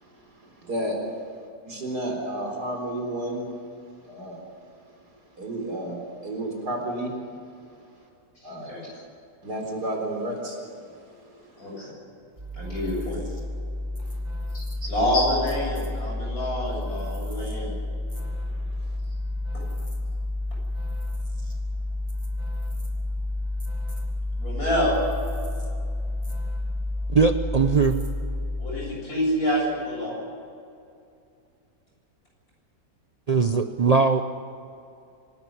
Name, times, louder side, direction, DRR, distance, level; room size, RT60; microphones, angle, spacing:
voice 1, 0.4-1.0 1.6-3.5 4.0-4.4 5.4-7.2 8.4-8.9 9.4-10.6 10.9-11.9 14.8-14.9 18.4-18.5, right 1 dB, 70° right, 2 dB, 4.7 m, -32 dB
voice 2, 8.4-8.8 11.6-11.9 12.5-13.2 14.8-17.7 24.4-24.9 28.6-30.2, equal, 60° left, -2 dB, 8.4 m, -27 dB
sound 1, 12.4-28.9, left 2 dB, 25° right, 3.2 m, -30 dB
voice 3, 27.1-28.0 33.3-34.2, right 4 dB, 55° right, 7 dB, 0.4 m, -20 dB
26.0 x 13.0 x 10.0 m, 2.5 s
omnidirectional pair, 1.8 m